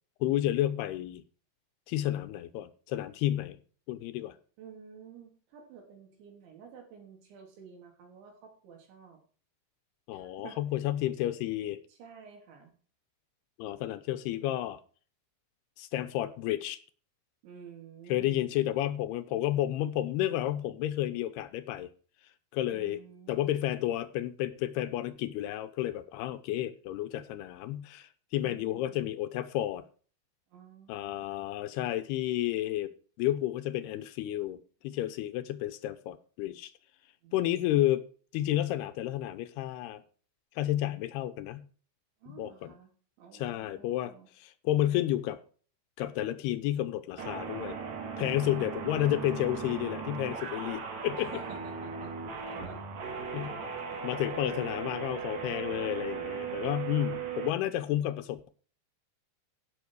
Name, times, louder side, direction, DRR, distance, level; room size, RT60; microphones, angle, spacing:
voice 1, 0.2-1.2 1.9-3.6 3.9-4.4 10.1-11.8 13.6-14.8 15.8-16.8 18.1-21.9 22.5-23.0 23.3-29.8 30.9-32.9 33.2-36.7 37.3-38.1 38.3-40.0 40.6-41.6 42.3-42.7 43.3-45.4 46.0-47.8 48.2-51.3 53.3-53.5 54.0-58.5, left 13 dB, 80° left, 2.6 m, -31 dB
voice 2, 4.6-9.2 10.1-10.6 11.9-12.7 17.4-18.5 22.7-23.5 28.4-29.1 30.5-31.2 37.2-37.4 42.2-42.9 43.2-44.3 48.1-49.1 51.1-52.1 52.5-52.8 53.4-53.5 54.4-55.0, right 7 dB, 85° right, 5.5 m, -51 dB
sound 1, 47.2-57.5, right 6 dB, 45° right, 2.9 m, -37 dB
15.5 x 6.3 x 4.8 m
omnidirectional pair, 5.1 m